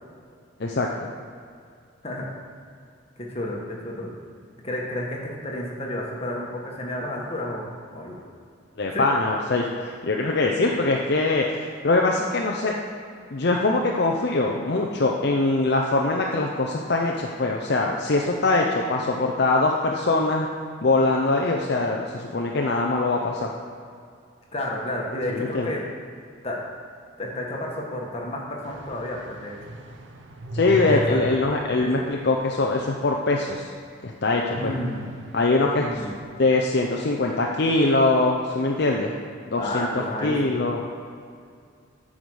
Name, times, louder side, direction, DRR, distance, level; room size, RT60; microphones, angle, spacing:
voice 1, 3.2-4.1 4.6-7.7 7.9-8.2 8.9-9.0 24.5-25.8 26.4-26.6 27.2-29.5 30.9-31.2 31.8-32.0 34.6-35.1 35.8-36.1 39.6-40.6, left 1 dB, 30° left, -2 dB, 1.4 m, -31 dB
voice 2, 8.8-12.7 13.3-20.5 20.8-23.5 25.3-25.7 30.5-33.7 34.0-34.7 35.3-36.0 36.3-39.2 39.5-40.8, left 2 dB, 55° left, 0 dB, 0.6 m, -23 dB
sound 1, 28.6-32.9 33.3-33.4 34.5-36.2, right 1 dB, 60° right, 0.8 m, -36 dB
9.1 x 5.0 x 6.3 m, 2.3 s
head